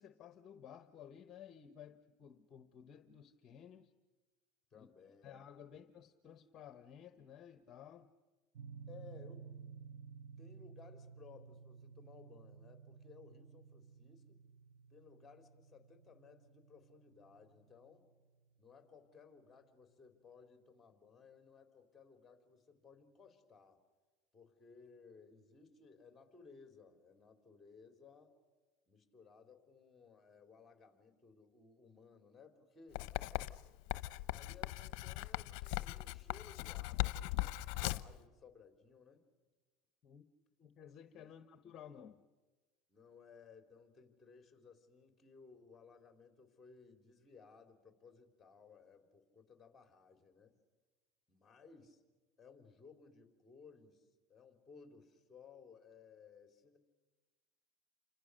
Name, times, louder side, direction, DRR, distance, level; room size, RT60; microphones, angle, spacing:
voice 1, 0.0-3.9 4.7-4.9 5.2-8.1 40.0-40.2 40.6-42.2, left 8 dB, 40° left, 10 dB, 1.1 m, -55 dB
voice 2, 4.7-5.3 8.9-9.4 10.4-14.4 14.9-18.0 18.6-23.8 24.3-28.4 28.9-33.1 34.3-39.2 41.2-41.5 42.9-50.6 51.3-52.0 52.4-56.8, left 5 dB, 15° left, 5 dB, 3.9 m, -60 dB
sound 1, 8.6-18.7, right 6 dB, 80° right, 0.8 m, -55 dB
Writing, 32.9-38.2, left 18 dB, 65° left, 0.7 m, -39 dB
29.5 x 25.5 x 6.6 m, 1.3 s
supercardioid pair, 115°, 0 cm